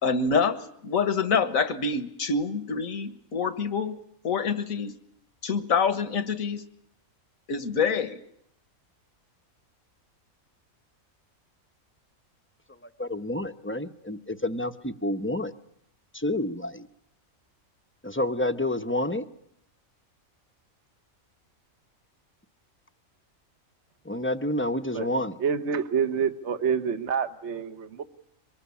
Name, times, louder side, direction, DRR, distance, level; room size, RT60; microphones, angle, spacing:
voice 1, 0.0-4.0 4.2-4.9 5.4-6.6 7.5-8.2, left 5 dB, 75° left, 13 dB, 1.9 m, -26 dB
voice 2, 13.0-15.5 16.1-16.9 18.0-19.2 24.0-25.3, left 1 dB, 10° left, 10 dB, 0.8 m, -29 dB
voice 3, 25.4-28.0, right 6 dB, 55° right, 10 dB, 1.4 m, -27 dB
24.0 x 20.0 x 8.4 m, 0.72 s
omnidirectional pair, 1.4 m